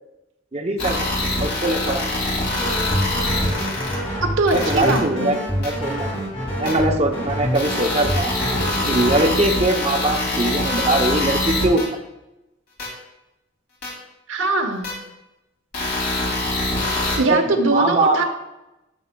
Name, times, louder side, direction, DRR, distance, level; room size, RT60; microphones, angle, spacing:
voice 1, 0.5-1.1 1.4-2.0 4.5-6.1 6.6-8.4 8.9-11.9 17.3-18.2, right 2 dB, 35° right, 2 dB, 0.7 m, -21 dB
sound 1, 0.8-4.0 4.5-5.0 5.6-5.7 6.7-6.8 7.5-11.8 12.8-12.9 13.8-13.9 14.8-14.9 15.7-17.2, left 2 dB, 55° left, 2.9 m, -24 dB
sound 2, 2.5-9.3, equal, 30° left, 2.5 m, -27 dB
voice 2, 4.2-5.4 14.3-15.0 17.2-18.2, right 3 dB, 85° right, 4 dB, 1.1 m, -21 dB
13.0 x 7.3 x 2.3 m, 0.94 s
head